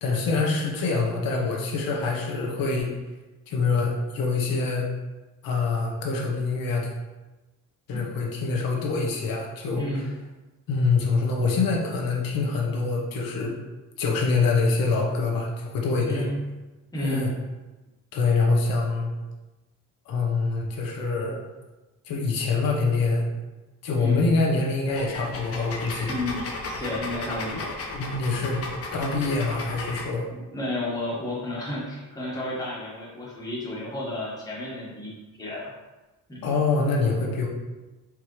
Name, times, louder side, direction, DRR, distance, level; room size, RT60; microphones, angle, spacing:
voice 1, 0.0-2.9 3.5-4.9 5.4-6.9 7.9-10.0 10.7-13.5 14.0-16.2 17.0-17.3 18.1-19.1 20.1-21.4 22.0-23.5 23.8-26.1 27.5-27.6 27.9-28.6 28.9-30.3 36.4-37.5, left 3 dB, 90° left, -1 dB, 1.0 m, -25 dB
voice 2, 9.7-10.1 16.1-16.4 16.9-17.3 23.9-24.2 26.1-26.4 26.8-27.7 28.4-28.5 30.3-35.1 35.4-35.7 36.3-36.5, left 1 dB, 10° left, -6 dB, 1.2 m, -32 dB
sound 1, 24.9-30.1, left 2 dB, 45° left, 0.7 m, -34 dB
4.7 x 3.5 x 3.0 m, 1.1 s
cardioid pair, 155°, 33 cm